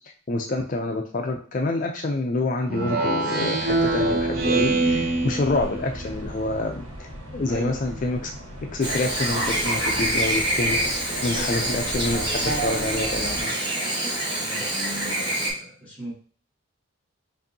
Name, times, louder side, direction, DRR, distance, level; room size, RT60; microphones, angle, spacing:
voice 1, 0.3-6.9 7.3-8.3 8.7-13.6, left 2 dB, 40° left, 2 dB, 0.4 m, -27 dB
Speech synthesizer, 2.7-6.2, right 3 dB, 45° right, 0.7 m, -24 dB
sound 1, 3.6-13.4, equal, 90° right, 1.2 m, -38 dB
voice 2, 7.5-8.0 11.3-11.8 14.3-16.1, equal, 5° left, -6 dB, 1.8 m, -38 dB
Chirp tweet / Buzz, 8.8-15.5, right 1 dB, 25° right, 1.1 m, -26 dB
5.2 x 2.6 x 2.7 m, 0.41 s
head